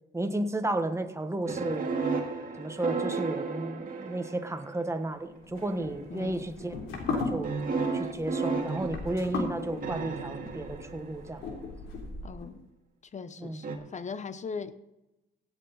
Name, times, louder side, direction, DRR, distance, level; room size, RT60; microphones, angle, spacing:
voice 1, 0.1-1.9 2.6-6.7 7.1-7.5 7.9-11.4 13.4-13.6, right 1 dB, 15° right, 7 dB, 1.4 m, -33 dB
sound 1, 1.5-4.8 5.6-6.0 7.4-11.5 13.6-13.8, right 4 dB, 45° right, 2.1 m, -33 dB
sound 2, 5.4-12.5, left 3 dB, 80° left, 3.6 m, -37 dB
voice 2, 6.1-6.5 12.2-12.6 13.1-14.8, left 5 dB, 35° left, 13 dB, 0.9 m, -39 dB
17.0 x 8.1 x 4.1 m, 0.97 s
cardioid pair, 90°, 20 cm